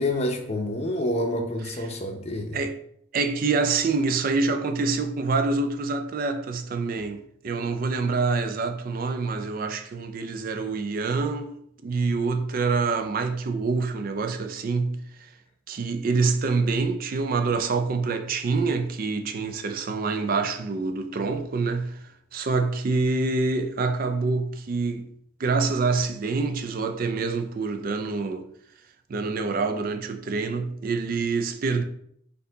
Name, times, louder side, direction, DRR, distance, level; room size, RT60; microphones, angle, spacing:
voice 1, 0.0-2.6, left 1 dB, 35° left, 0.6 m, -28 dB
voice 2, 3.1-11.6 11.8-15.3 15.7-25.1 25.4-28.5 29.1-31.8, right 4 dB, 45° right, 0.3 m, -26 dB
4.2 x 2.7 x 3.9 m
head